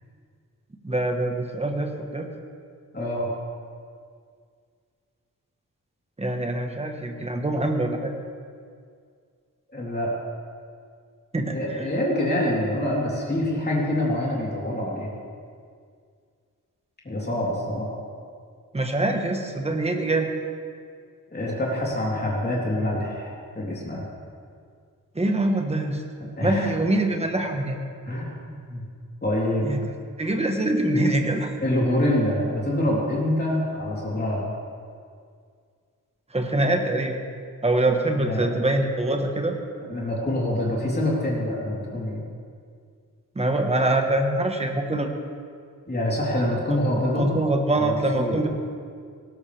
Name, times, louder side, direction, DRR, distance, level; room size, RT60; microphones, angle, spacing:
voice 1, 0.8-2.3 6.2-8.1 11.3-11.9 18.7-20.3 25.1-26.0 26.4-27.8 29.6-29.8 30.2-31.5 36.3-37.2 37.6-39.5 43.3-45.1 47.1-48.5, right 2 dB, 20° right, 3 dB, 1.3 m, -24 dB
voice 2, 2.9-3.3 9.7-10.1 11.5-15.1 17.0-17.9 21.3-24.1 26.4-26.7 28.1-28.8 29.2-29.7 31.6-34.4 38.2-38.5 39.9-42.2 45.9-47.3 47.7-48.5, left 1 dB, 30° left, -5 dB, 3.5 m, -26 dB
18.5 x 17.0 x 3.4 m, 2.2 s
wide cardioid pair, 170°, 33 cm